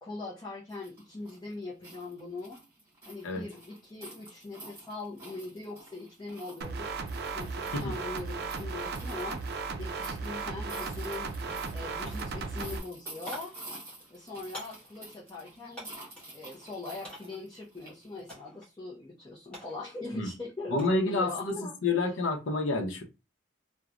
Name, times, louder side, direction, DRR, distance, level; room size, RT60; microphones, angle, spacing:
voice 1, 0.0-2.6 3.0-6.9 7.3-11.3 11.7-13.5 14.1-16.0 16.3-22.1, left 2 dB, 20° left, 0.6 m, -41 dB
sound 1, 0.7-18.3, right 1 dB, 15° right, 1.2 m, -50 dB
sound 2, 6.6-12.8, right 4 dB, 55° right, 0.4 m, -36 dB
sound 3, 13.0-16.4 17.0-17.5 18.3-18.7 19.0-21.0 21.4-21.8, equal, 5° left, 1.4 m, -49 dB
voice 2, 20.7-21.5 21.8-23.0, left 2 dB, 85° left, 0.7 m, -28 dB
3.0 x 2.1 x 2.4 m
head